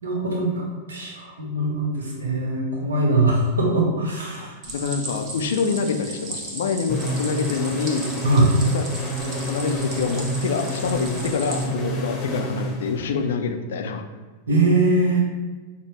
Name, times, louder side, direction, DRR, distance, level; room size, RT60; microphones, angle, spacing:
voice 1, 0.0-4.5 8.2-8.5 14.5-15.2, right 2 dB, 70° right, -1 dB, 0.9 m, -21 dB
voice 2, 4.4-8.1 8.7-8.8 9.2-14.0, left 5 dB, 60° left, 6 dB, 0.3 m, -26 dB
Stream, 4.6-11.6, right 2 dB, 35° right, 0.8 m, -36 dB
sound 1, 6.9-13.4, equal, 25° left, 0.8 m, -29 dB
5.4 x 2.0 x 3.0 m, 1.3 s
figure-of-eight pair, 90°, 0 cm